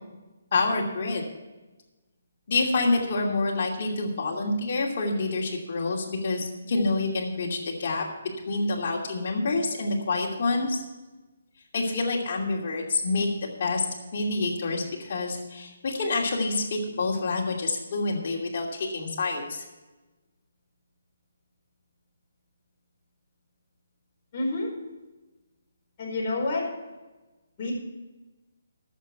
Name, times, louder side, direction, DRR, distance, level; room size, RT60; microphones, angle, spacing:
voice 1, 0.5-1.2 2.5-8.0 8.5-10.8 11.7-13.8 14.1-19.6, left 3 dB, 45° left, -1 dB, 2.8 m, -27 dB
voice 2, 24.3-24.7 26.0-26.6 27.6-27.7, left 2 dB, 25° left, -6 dB, 4.7 m, -28 dB
11.5 x 7.5 x 8.0 m, 1.1 s
hypercardioid pair, 170°, 0 cm